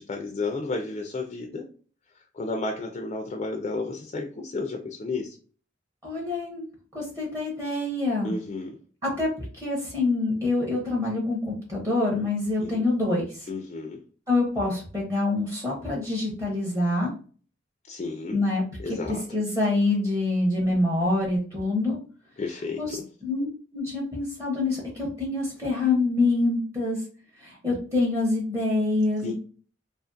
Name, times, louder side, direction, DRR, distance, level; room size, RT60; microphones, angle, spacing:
voice 1, 0.0-1.7 2.3-5.4 8.2-8.8 12.6-12.8 13.5-14.0 17.9-18.4 18.8-19.2 22.4-22.8 29.2-29.3, left 3 dB, 35° left, 2 dB, 0.3 m, -32 dB
voice 2, 6.0-6.6 6.9-8.3 9.0-13.5 14.3-17.1 18.3-22.0 22.8-23.5 23.7-27.0 27.4-29.3, left 2 dB, 20° right, -4 dB, 0.7 m, -26 dB
2.5 x 2.4 x 2.5 m, 0.40 s
head